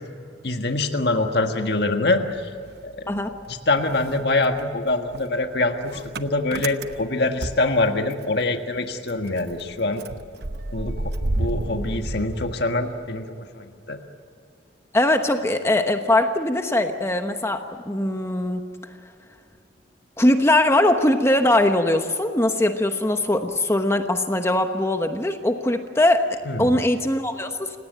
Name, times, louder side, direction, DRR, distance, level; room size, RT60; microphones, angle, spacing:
voice 1, 0.4-2.5 2.8-3.2 3.7-10.0 10.7-13.3 13.5-14.0 26.5-26.8, left 2 dB, 60° left, 5 dB, 1.6 m, -24 dB
Motor vehicle (road) / Engine starting, 2.3-3.5 3.8-8.4 8.7-8.8 9.1-13.2, right 2 dB, 60° right, 0.9 m, -32 dB
voice 2, 14.9-18.6 20.2-27.8, left 1 dB, 15° left, 6 dB, 1.1 m, -21 dB
29.5 x 17.5 x 9.2 m, 2.4 s
head